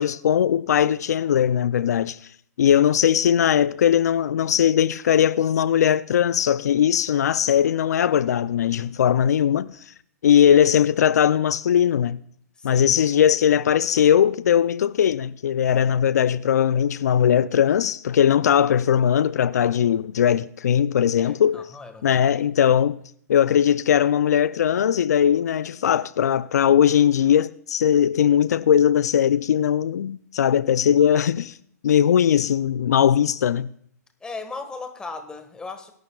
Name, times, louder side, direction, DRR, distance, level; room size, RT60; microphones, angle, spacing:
voice 1, 0.0-2.2 2.6-9.8 10.2-12.2 12.6-21.7 22.0-23.0 23.3-31.6 31.8-33.7, left 9 dB, 75° left, 0.4 m, -19 dB
voice 2, 21.2-22.2 34.2-35.9, left 4 dB, 10° left, 1.5 m, -37 dB
23.0 x 12.0 x 2.3 m
hypercardioid pair, 135°, 9 cm